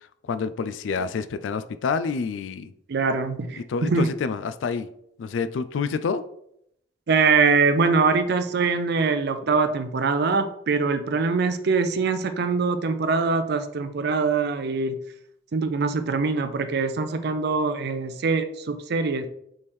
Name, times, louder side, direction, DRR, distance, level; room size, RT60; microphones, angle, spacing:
voice 1, 0.3-2.7 3.7-4.9 5.2-6.2, left 5 dB, 85° left, 12 dB, 0.3 m, -28 dB
voice 2, 2.9-4.1 7.1-15.0 15.5-19.3, right 4 dB, 60° right, 9 dB, 0.5 m, -23 dB
3.6 x 3.2 x 4.2 m, 0.74 s
head